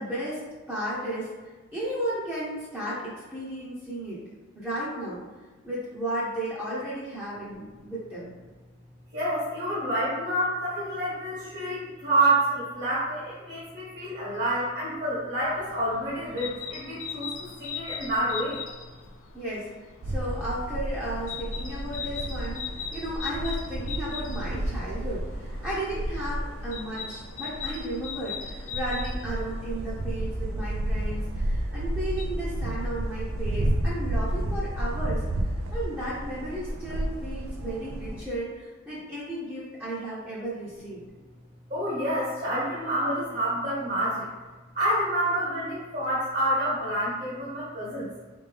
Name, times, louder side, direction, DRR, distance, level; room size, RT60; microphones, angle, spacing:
voice 1, 0.0-4.2 4.6-5.2 5.6-8.3 19.3-19.7 20.0-35.2 35.7-41.0, right 1 dB, 10° right, -9 dB, 0.7 m, -34 dB
voice 2, 9.1-18.6 41.7-44.3 44.7-48.1, right 1 dB, 40° right, -8 dB, 1.2 m, -28 dB
sound 1, 15.4-32.2, left 7 dB, 80° left, 0.5 m, -41 dB
sound 2, 20.0-38.2, right 1 dB, 90° right, 0.5 m, -31 dB
3.9 x 3.4 x 3.3 m, 1.3 s
head